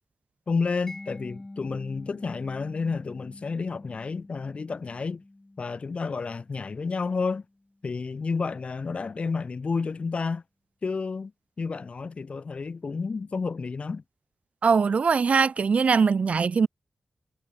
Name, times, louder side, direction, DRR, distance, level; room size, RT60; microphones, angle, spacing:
voice 1, 0.5-5.2 5.6-7.4 7.8-10.4 10.8-11.3 11.6-14.0, left 4 dB, 50° left, 3.0 m, -30 dB
Mallet percussion, 0.9-7.6, left 2 dB, 20° left, 6.9 m, -47 dB
voice 2, 14.6-16.7, right 5 dB, 55° right, 0.4 m, -21 dB
wide cardioid pair, 145°, 3 cm